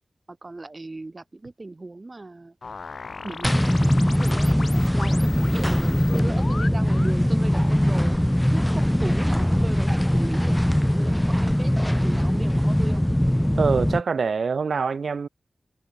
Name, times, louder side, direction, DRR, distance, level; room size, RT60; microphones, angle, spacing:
voice 1, 0.3-2.6 3.2-4.6 4.9-8.2 8.5-10.6 10.9-13.0, right 2 dB, 35° right, 1.7 m, -37 dB
sound 1, 2.6-7.2, left 4 dB, 65° left, 6.6 m, -38 dB
sound 2, 3.4-14.0, equal, 5° left, 0.7 m, -21 dB
voice 2, 13.6-15.3, right 5 dB, 85° right, 1.0 m, -24 dB
wide cardioid pair, 75°, 0 cm